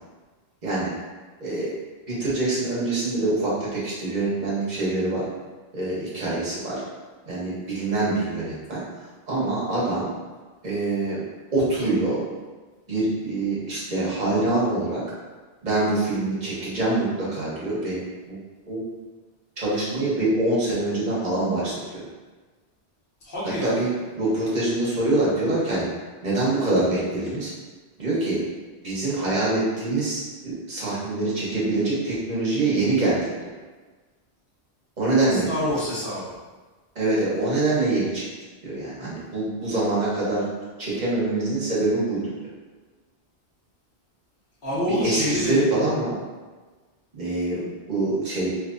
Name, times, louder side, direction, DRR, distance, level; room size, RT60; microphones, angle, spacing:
voice 1, 1.4-1.7 2.1-5.2 5.7-6.8 7.3-8.8 9.3-10.1 10.6-12.2 12.9-15.0 15.6-18.0 18.3-18.4 18.7-18.8 19.6-22.0 23.6-23.9 24.2-25.9 26.2-27.5 28.0-28.4 28.8-33.2 35.0-35.5 36.9-38.3 38.6-40.4 40.8-42.2 44.9-46.1 47.1-48.5, right 2 dB, 40° right, -7 dB, 1.1 m, -25 dB
voice 2, 23.2-23.7 35.2-36.3 44.6-45.6, left 1 dB, 50° left, -12 dB, 1.7 m, -27 dB
3.3 x 3.0 x 2.6 m, 1.3 s
omnidirectional pair, 1.1 m